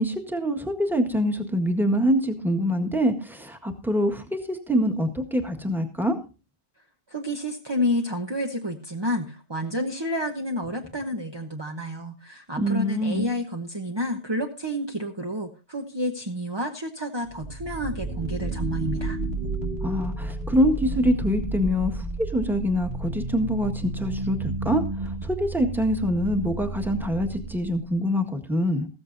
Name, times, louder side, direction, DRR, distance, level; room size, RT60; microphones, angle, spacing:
voice 1, 0.0-6.2 12.6-13.3 19.8-28.9, equal, ahead, 4 dB, 1.6 m, -25 dB
voice 2, 7.1-19.2, equal, 25° right, 3 dB, 1.1 m, -30 dB
sound 1, 17.3-27.9, right 2 dB, 90° right, 2.5 m, -32 dB
15.0 x 14.0 x 2.7 m, 0.32 s
omnidirectional pair, 1.0 m